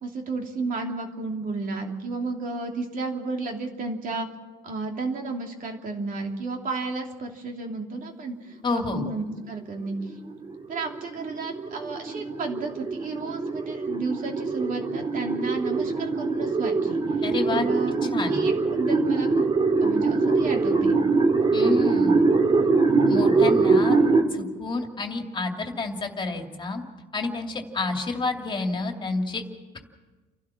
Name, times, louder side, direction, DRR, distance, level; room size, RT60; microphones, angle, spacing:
voice 1, 0.0-4.3 4.6-10.1 10.7-17.0 17.5-18.0 18.3-19.4 19.8-21.0, right 3 dB, 55° right, 2 dB, 3.0 m, -32 dB
voice 2, 8.6-9.0 17.2-17.7 18.1-18.4 21.5-22.1 23.0-24.0 24.3-26.8 27.1-29.4, left 3 dB, 30° left, 3 dB, 2.6 m, -29 dB
sound 1, 9.9-24.2, right 3 dB, 30° right, 2.2 m, -23 dB
30.0 x 12.0 x 7.2 m, 1.3 s
cardioid pair, 110°, 17 cm